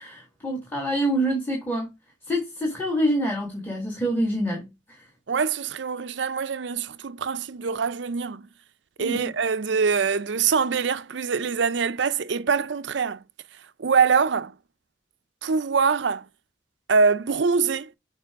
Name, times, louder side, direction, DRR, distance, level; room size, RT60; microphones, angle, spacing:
voice 1, 0.0-1.9 2.3-5.0 9.0-9.3, equal, 10° left, 1.8 m, -26 dB
voice 2, 5.3-8.4 9.0-13.2 13.8-14.5 15.4-16.2 16.9-17.9, right 5 dB, 65° right, 0.5 m, -24 dB
6.7 x 4.9 x 3.6 m
head